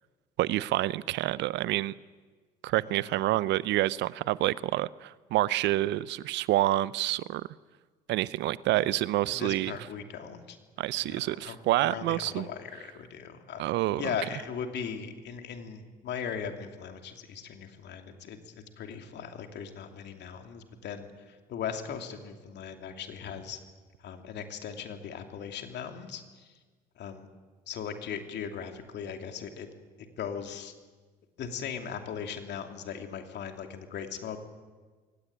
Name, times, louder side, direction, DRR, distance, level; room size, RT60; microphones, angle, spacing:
voice 1, 0.4-1.9 2.6-7.5 8.1-9.7 10.8-12.5 13.6-14.0, right 16 dB, 60° right, 20 dB, 0.7 m, -28 dB
voice 2, 9.3-10.6 11.0-11.6 11.8-13.6 13.9-23.6 24.0-26.5 27.0-27.3 27.7-29.7 30.2-30.7 31.4-34.4, left 7 dB, 55° left, 5 dB, 2.8 m, -38 dB
23.0 x 18.0 x 9.2 m, 1.4 s
hypercardioid pair, 55°, 21 cm